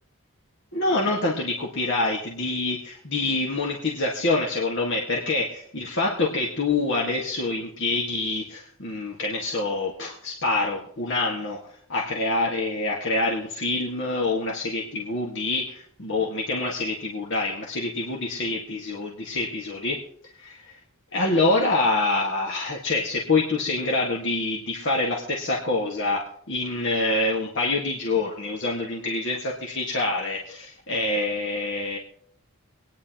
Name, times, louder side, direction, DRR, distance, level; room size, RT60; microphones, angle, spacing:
voice 1, 0.7-11.6 11.9-20.0 20.4-20.8 21.1-32.0, left 2 dB, 55° left, -2 dB, 1.6 m, -26 dB
24.5 x 9.7 x 2.9 m, 0.64 s
head